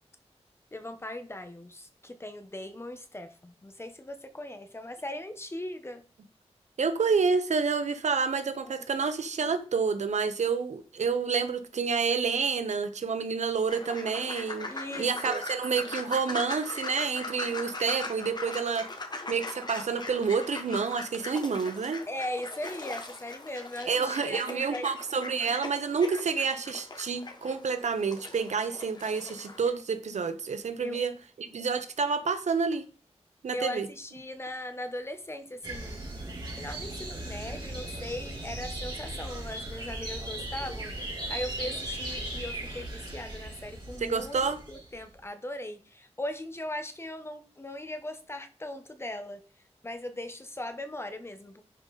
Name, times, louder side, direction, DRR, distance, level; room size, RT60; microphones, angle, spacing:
voice 1, 0.7-6.0 8.6-8.9 14.7-15.5 22.1-24.9 30.8-31.0 33.5-36.0 36.6-49.4 49.8-51.6, left 1 dB, 20° left, 1.1 m, -39 dB
voice 2, 6.8-18.9 19.3-22.0 23.9-31.1 31.4-32.8 33.4-33.9 44.0-44.6, right 5 dB, 85° right, 1.0 m, -29 dB
sound 1, 13.7-29.7, left 2 dB, 40° left, 1.4 m, -40 dB
sound 2, 35.6-45.0, right 1 dB, 40° right, 3.2 m, -38 dB
10.5 x 5.3 x 4.1 m
wide cardioid pair, 115°, 12 cm